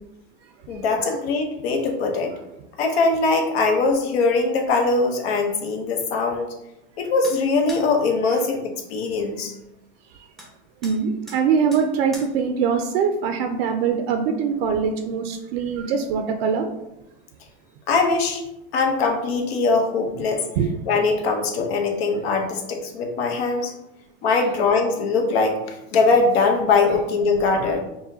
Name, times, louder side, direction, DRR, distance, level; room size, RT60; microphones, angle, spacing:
voice 1, 0.7-2.3 2.8-6.5 7.0-9.5 17.9-18.4 18.7-20.4 20.9-23.7 24.2-27.8, left 3 dB, 85° left, 3 dB, 0.9 m, -21 dB
sound 1, 7.2-7.4 7.7-7.9 10.4-10.5 10.8-11.0 11.3-11.4 11.7-11.9 12.1-12.3, equal, ahead, 0.6 m, -40 dB
voice 2, 10.8-16.7 20.6-20.7, right 6 dB, 80° right, 5 dB, 0.5 m, -22 dB
5.4 x 2.2 x 2.7 m, 0.92 s
supercardioid pair, 135°, 30 cm